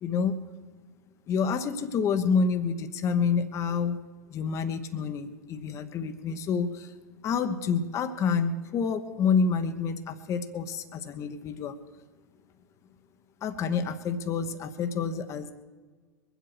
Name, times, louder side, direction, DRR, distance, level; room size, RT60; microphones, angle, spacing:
voice 1, 0.0-0.4 1.3-4.0 4.3-6.9 7.2-11.8 13.4-15.5, left 5 dB, 35° left, 9 dB, 1.0 m, -28 dB
22.5 x 8.1 x 6.2 m, 1.4 s
figure-of-eight pair, 85°, 9 cm